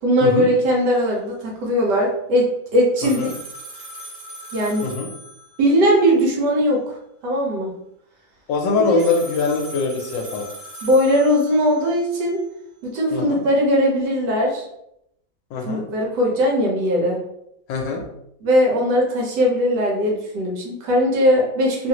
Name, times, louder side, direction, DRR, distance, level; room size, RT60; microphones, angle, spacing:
voice 1, 0.0-3.3 4.5-4.9 5.6-6.9 7.2-7.7 8.9-9.1 10.8-12.4 12.8-14.6 15.6-17.2 18.4-21.9, equal, 65° right, -1 dB, 1.3 m, -19 dB
sound 1, 3.0-5.8 9.0-12.0, right 1 dB, 45° right, 0.6 m, -38 dB
voice 2, 8.5-10.5 13.1-13.4 15.5-15.8 17.7-18.0, left 4 dB, 75° left, 1 dB, 1.2 m, -22 dB
3.1 x 2.4 x 2.8 m, 0.77 s
omnidirectional pair, 2.1 m